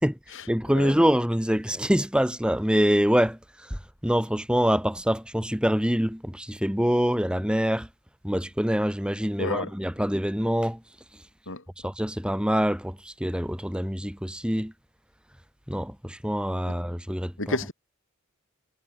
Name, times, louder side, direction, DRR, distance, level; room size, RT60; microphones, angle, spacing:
voice 1, 0.5-3.4 3.7-7.9 8.2-10.8 11.8-14.7 15.7-17.6, equal, 5° right, 4.2 m, -25 dB
voice 2, 9.4-9.7 11.5-11.6 16.7-16.8 17.4-17.7, left 2 dB, 60° left, 6.9 m, -31 dB
head